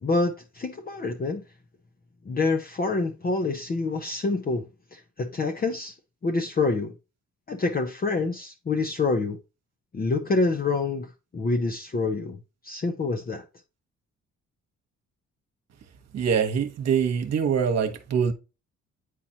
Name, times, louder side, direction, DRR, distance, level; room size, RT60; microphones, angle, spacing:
voice 1, 0.0-1.4 2.2-5.9 6.2-6.9 7.5-9.4 9.9-13.4, left 3 dB, 30° left, 0.8 m, -27 dB
voice 2, 16.1-18.3, right 7 dB, 60° right, 1.2 m, -24 dB
9.3 x 4.1 x 2.8 m
cardioid pair, 90°, 30 cm